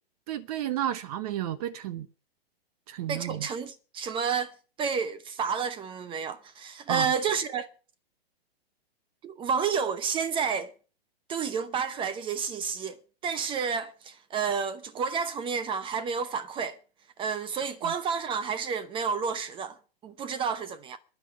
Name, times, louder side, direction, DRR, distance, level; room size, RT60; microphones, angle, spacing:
voice 1, 0.3-2.1 2.9-3.5 6.9-7.1 17.8-17.9, right 12 dB, 40° right, 1.0 m, -32 dB
voice 2, 3.1-4.5 4.8-7.7 9.2-10.7 11.3-16.8 17.2-19.8 20.0-21.0, right 6 dB, 15° right, 0.8 m, -30 dB
10.5 x 9.2 x 9.6 m
figure-of-eight pair, 120°, 31 cm